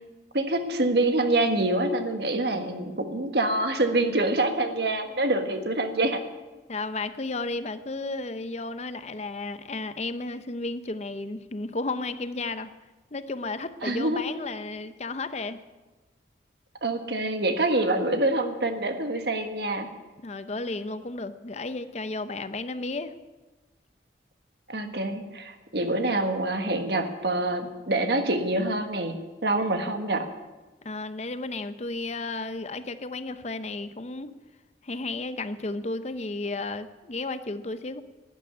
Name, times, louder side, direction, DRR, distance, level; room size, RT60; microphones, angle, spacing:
voice 1, 0.3-6.2 13.8-14.2 16.8-19.9 24.7-29.2 29.4-30.3, right 2 dB, 65° right, 6 dB, 1.5 m, -26 dB
voice 2, 6.7-12.7 13.1-15.6 20.2-23.1 30.8-34.3 34.8-38.0, left 3 dB, 40° left, 12 dB, 0.7 m, -33 dB
12.0 x 9.8 x 9.7 m, 1.2 s
head